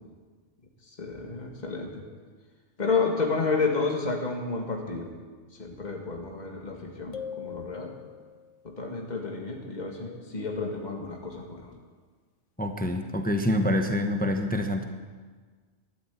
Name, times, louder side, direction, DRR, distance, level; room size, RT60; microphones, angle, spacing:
voice 1, 0.9-2.0 2.8-5.1 5.6-7.9 8.6-11.7, left 4 dB, 35° left, 1 dB, 2.1 m, -31 dB
sound 1, 7.1-8.6, left 8 dB, 75° left, 1.2 m, -40 dB
voice 2, 12.6-14.9, left 1 dB, 10° left, 5 dB, 0.9 m, -26 dB
13.5 x 13.0 x 8.4 m, 1.5 s
omnidirectional pair, 1.3 m